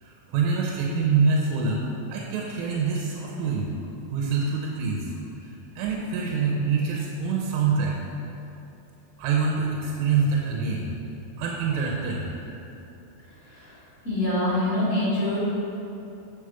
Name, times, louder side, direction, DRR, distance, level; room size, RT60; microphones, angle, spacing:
voice 1, 0.0-3.7 4.1-5.1 5.8-8.0 9.2-10.9 11.4-12.3, right 5 dB, 90° right, -2 dB, 2.9 m, -25 dB
voice 2, 14.0-15.4, left 1 dB, 35° left, -10 dB, 1.1 m, -24 dB
8.6 x 5.2 x 5.6 m, 2.9 s
omnidirectional pair, 5.0 m